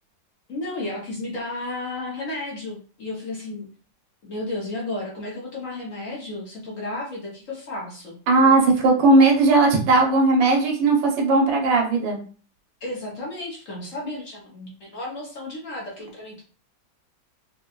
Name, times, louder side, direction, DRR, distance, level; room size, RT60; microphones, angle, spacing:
voice 1, 0.5-3.7 4.2-8.2 12.8-16.4, left 2 dB, 55° left, -3 dB, 1.0 m, -33 dB
voice 2, 8.3-12.2, right 3 dB, 90° right, 0 dB, 1.6 m, -17 dB
4.3 x 2.2 x 2.3 m, 0.40 s
omnidirectional pair, 2.0 m